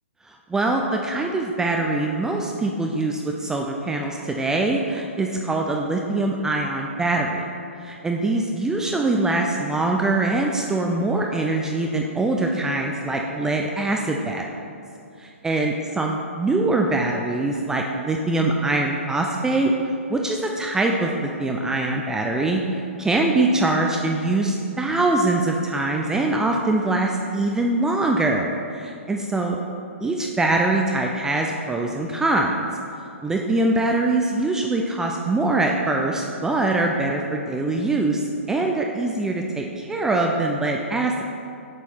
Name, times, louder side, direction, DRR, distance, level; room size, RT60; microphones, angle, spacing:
voice 1, 0.3-7.5 7.8-14.4 15.2-19.7 20.1-22.6 23.0-29.6 30.0-32.6 33.2-41.2, right 2 dB, 5° right, 1 dB, 0.3 m, -23 dB
7.2 x 6.3 x 4.4 m, 2.5 s
hypercardioid pair, 130°, 8 cm